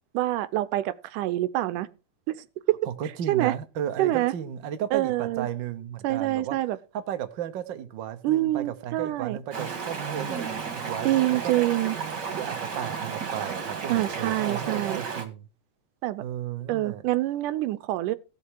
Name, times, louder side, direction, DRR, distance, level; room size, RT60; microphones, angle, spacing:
voice 1, 0.1-1.9 2.3-2.8 3.3-3.5 4.0-4.3 4.9-5.5 6.0-6.8 8.2-9.4 11.1-12.0 13.9-15.0 16.0-16.2 16.7-18.2, right 16 dB, 85° right, 2.3 m, -26 dB
voice 2, 2.8-6.6 6.9-11.5 12.1-15.5 16.2-17.0, right 10 dB, 60° right, 1.2 m, -34 dB
Stream, 9.5-15.3, right 5 dB, 40° right, 2.1 m, -33 dB
15.5 x 6.7 x 4.7 m
omnidirectional pair, 3.6 m